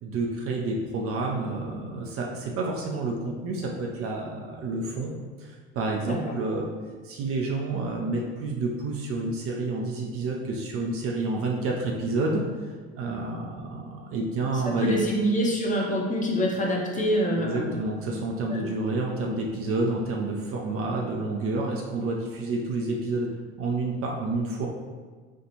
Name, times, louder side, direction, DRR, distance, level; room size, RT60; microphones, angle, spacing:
voice 1, 0.0-5.1 5.4-6.7 7.0-12.7 13.0-14.9 17.4-23.3 23.6-24.7, right 2 dB, 40° right, 0 dB, 0.6 m, -29 dB
voice 2, 14.6-17.7 18.5-18.7, equal, 25° left, -2 dB, 0.8 m, -25 dB
4.5 x 2.4 x 2.8 m, 1.4 s
hypercardioid pair, 70°, 34 cm